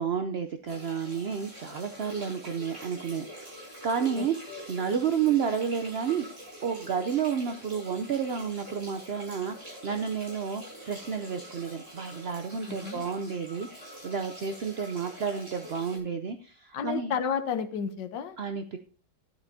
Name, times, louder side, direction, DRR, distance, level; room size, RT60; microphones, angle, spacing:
voice 1, 0.0-6.3 6.6-17.1 18.4-18.8, right 7 dB, 65° right, 7 dB, 0.6 m, -31 dB
sound 1, 0.7-16.0, equal, 45° right, 6.4 m, -45 dB
voice 2, 4.2-4.6 12.7-13.0 16.7-18.4, left 7 dB, 90° left, 9 dB, 1.5 m, -32 dB
12.5 x 11.0 x 2.7 m, 0.38 s
omnidirectional pair, 1.9 m